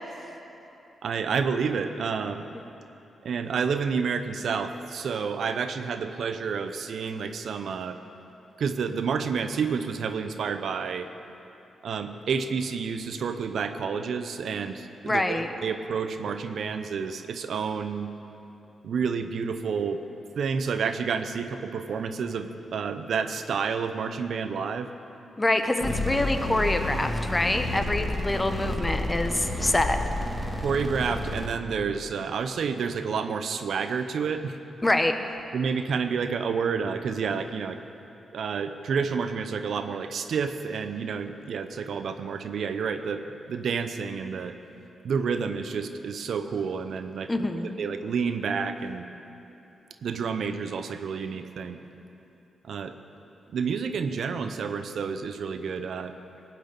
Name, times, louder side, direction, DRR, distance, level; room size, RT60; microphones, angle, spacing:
voice 1, 1.0-2.5 3.2-8.0 8.6-11.1 11.8-18.1 18.8-20.0 20.4-24.9 30.6-34.5 35.5-37.8 38.3-44.5 45.0-47.3 47.6-49.1 50.0-51.8 52.6-52.9 53.5-56.1, right 6 dB, 70° right, 9 dB, 0.7 m, -29 dB
voice 2, 15.0-15.5 25.4-30.0 34.8-35.1 47.3-47.8, left 1 dB, 20° left, 7 dB, 1.2 m, -25 dB
sound 1, 25.8-31.5, left 1 dB, 5° right, 2.4 m, -30 dB
18.0 x 6.2 x 8.9 m, 3.0 s
supercardioid pair, 50°, 0 cm